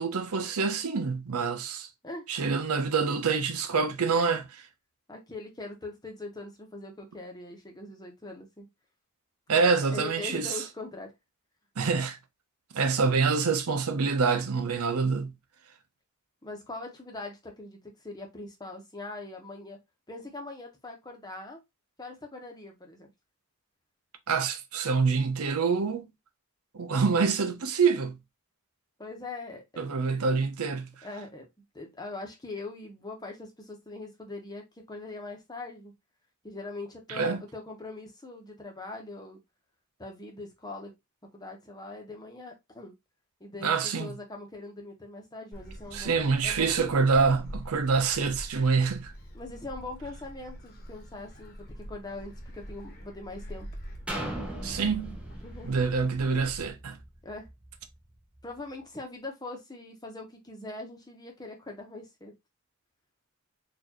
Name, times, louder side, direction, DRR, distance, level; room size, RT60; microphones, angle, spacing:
voice 1, 0.0-1.9 2.3-4.6 9.5-10.6 11.8-12.2 12.7-15.3 24.3-26.1 26.7-28.2 29.8-30.9 37.1-37.4 43.6-44.1 45.9-49.1 54.6-55.2 55.6-57.0, right 5 dB, 90° right, 0.7 m, -26 dB
voice 2, 5.1-8.7 9.5-11.1 16.4-19.8 20.1-21.6 22.0-23.1 29.0-30.0 31.0-31.5 31.7-35.9 36.4-39.4 40.0-40.9 41.3-42.9 43.4-46.8 49.3-53.7 55.4-55.7 57.2-57.5 58.4-62.3, left 2 dB, 20° left, 1.0 m, -42 dB
Gull seagull, 45.5-56.7, equal, 45° left, 1.1 m, -44 dB
sound 1, 54.1-57.9 58.4-58.5, right 1 dB, 5° right, 0.8 m, -39 dB
4.4 x 2.6 x 2.9 m
head